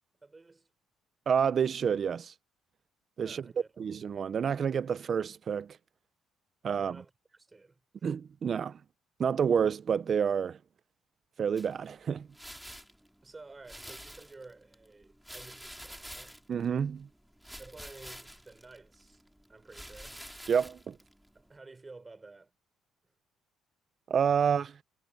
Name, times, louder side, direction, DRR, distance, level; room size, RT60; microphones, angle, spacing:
voice 1, 0.2-0.7 3.2-3.9 6.8-8.1 13.2-16.4 17.6-19.2 19.5-20.2 21.3-22.5, right 3 dB, 20° right, 4.3 m, -52 dB
voice 2, 1.3-2.3 3.2-3.5 3.8-5.8 6.6-7.0 8.0-8.8 9.2-10.6 11.4-12.3 16.5-17.1 20.5-21.0 24.1-24.8, right 7 dB, 40° right, 0.7 m, -29 dB
sound 1, 11.6-21.6, equal, ahead, 2.9 m, -49 dB
cardioid pair, 135°, 0 cm